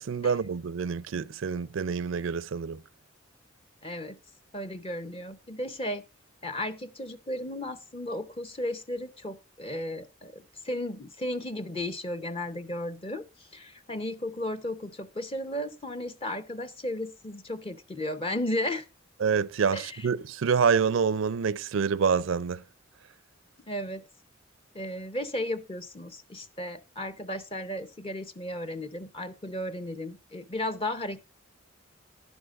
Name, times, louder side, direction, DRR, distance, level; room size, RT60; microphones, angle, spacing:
voice 1, 0.0-2.8 19.2-22.6, right 6 dB, 75° right, 0.5 m, -27 dB
voice 2, 3.8-4.2 4.5-6.0 6.4-18.9 19.7-20.1 23.7-24.0 24.7-31.2, left 1 dB, 30° left, 0.6 m, -34 dB
12.5 x 10.5 x 2.4 m
head